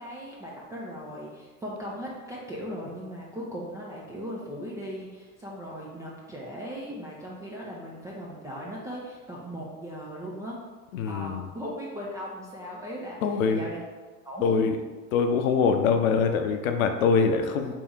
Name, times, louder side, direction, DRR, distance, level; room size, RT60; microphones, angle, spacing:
voice 1, 0.0-10.6 11.1-13.2 13.5-13.8 14.2-14.7, equal, 10° right, -5 dB, 0.3 m, -38 dB
voice 2, 10.9-11.5 13.2-13.6 14.4-14.8 15.1-17.7, left 5 dB, 60° left, 6 dB, 0.6 m, -23 dB
3.4 x 3.1 x 4.5 m, 1.3 s
figure-of-eight pair, 80°, 46 cm